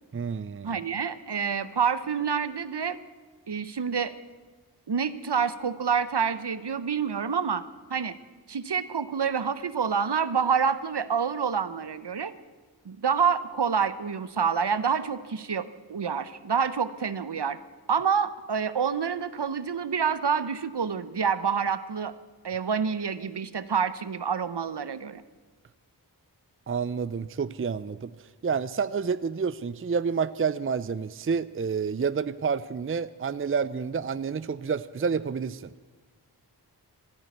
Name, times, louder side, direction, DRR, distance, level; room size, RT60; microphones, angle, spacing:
voice 1, 0.1-0.8 26.7-28.1 28.4-35.7, right 6 dB, 35° right, 16 dB, 0.4 m, -29 dB
voice 2, 0.6-3.0 3.5-4.2 4.9-7.6 7.9-8.1 8.5-12.4 12.8-17.6 17.9-22.1 22.4-25.2, right 6 dB, 75° right, 15 dB, 0.9 m, -27 dB
14.0 x 10.5 x 9.3 m, 1.4 s
wide cardioid pair, 50°, 41 cm